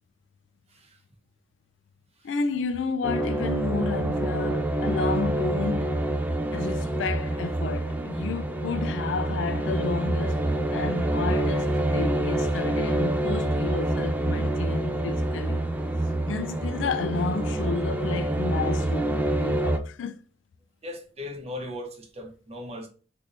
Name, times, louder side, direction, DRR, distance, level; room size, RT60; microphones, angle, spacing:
voice 1, 2.2-6.0 6.5-15.7 16.2-20.2, left 4 dB, 85° left, 0.4 m, -31 dB
sound 1, 3.0-19.8, right 1 dB, 10° right, 0.3 m, -27 dB
voice 2, 20.8-22.9, left 1 dB, 35° right, 0.8 m, -38 dB
3.4 x 2.6 x 2.7 m
head